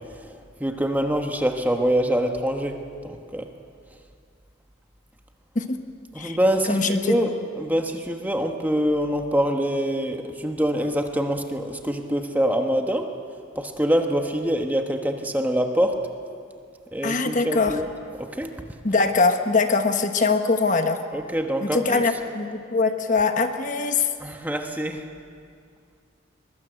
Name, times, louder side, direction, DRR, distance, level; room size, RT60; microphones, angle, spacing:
voice 1, 0.0-3.5 6.1-13.1 13.5-16.0 16.9-17.9 18.2-18.5 21.1-22.1 24.2-25.0, equal, 10° right, 4 dB, 1.2 m, -25 dB
voice 2, 6.7-7.2 17.0-17.8 18.8-21.0 21.6-24.1, left 4 dB, 40° left, 7 dB, 1.2 m, -22 dB
22.5 x 22.0 x 8.0 m, 2.3 s
head